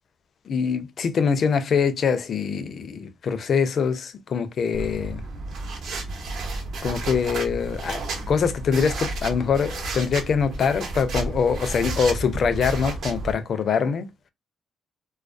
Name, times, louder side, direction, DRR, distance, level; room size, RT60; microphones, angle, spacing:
voice 1, 0.5-5.2 6.8-14.1, left 6 dB, 55° left, 0.4 m, -24 dB
sound 1, 4.7-13.3, right 2 dB, 70° right, 0.8 m, -32 dB
2.3 x 2.2 x 2.5 m
cardioid pair, 90°, 0 cm